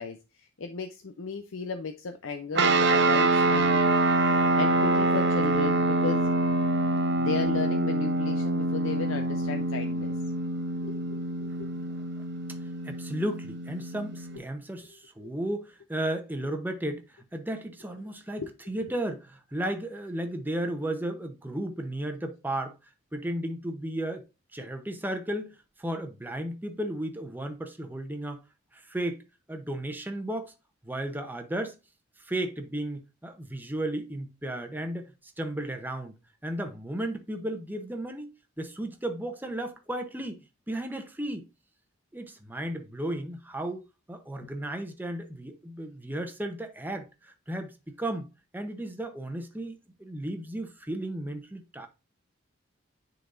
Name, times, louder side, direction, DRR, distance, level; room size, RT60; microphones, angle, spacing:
voice 1, 0.0-3.8 4.5-6.2 7.2-10.1 10.8-11.2 11.6-11.7 15.2-15.3 18.4-18.8, left 4 dB, 85° left, 0.6 m, -35 dB
sound 1, 2.5-14.4, right 2 dB, 60° right, 0.9 m, -25 dB
voice 2, 12.8-22.7 23.1-24.2 24.5-28.4 28.7-29.2 29.5-30.5 30.8-31.7 32.2-36.1 36.4-38.3 38.6-40.4 40.7-41.5 42.1-48.3 48.5-51.9, right 1 dB, 10° right, 0.8 m, -34 dB
9.8 x 4.0 x 2.5 m
head